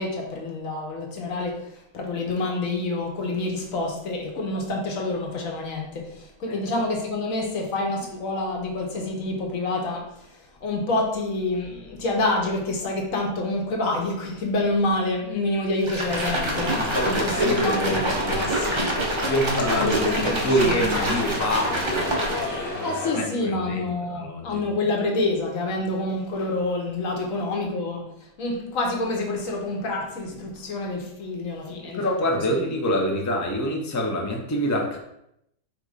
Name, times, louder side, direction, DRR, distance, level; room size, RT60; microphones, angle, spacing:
voice 1, 0.0-10.3 10.6-19.0 19.8-20.8 22.8-28.1 28.4-32.1, left 2 dB, 75° left, 0 dB, 1.3 m, -27 dB
sound 1, 15.8-22.7, right 1 dB, 30° right, 0.5 m, -27 dB
sound 2, 16.1-23.2, left 2 dB, 50° left, 1.6 m, -32 dB
voice 2, 16.5-18.4 19.3-24.6 31.8-35.0, equal, 20° left, 0 dB, 0.4 m, -27 dB
4.3 x 2.5 x 4.8 m, 0.80 s
omnidirectional pair, 1.4 m